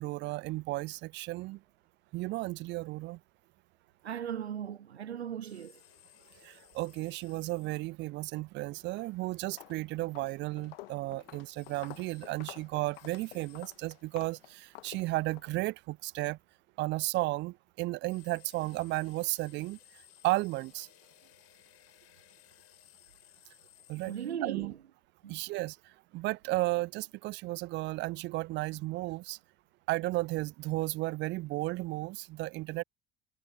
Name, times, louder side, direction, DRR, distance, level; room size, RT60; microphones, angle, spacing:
voice 1, 0.0-1.6 2.1-3.2 6.4-16.4 16.8-19.8 20.2-20.9 23.9-24.1 24.4-24.7 25.3-29.4 29.9-32.8, right 20 dB, 35° right, 0.4 m, -34 dB
voice 2, 4.0-5.8 24.0-24.8 25.2-25.4, right 9 dB, 80° right, 0.7 m, -38 dB
sound 1, 5.4-7.8 11.5-12.3 12.9-13.8 18.1-24.4, left 16 dB, 50° left, 4.6 m, -60 dB
Walk footsteps, 8.8-9.1 9.4-15.5, left 19 dB, 65° left, 1.3 m, -51 dB
figure-of-eight pair, 65°, 32 cm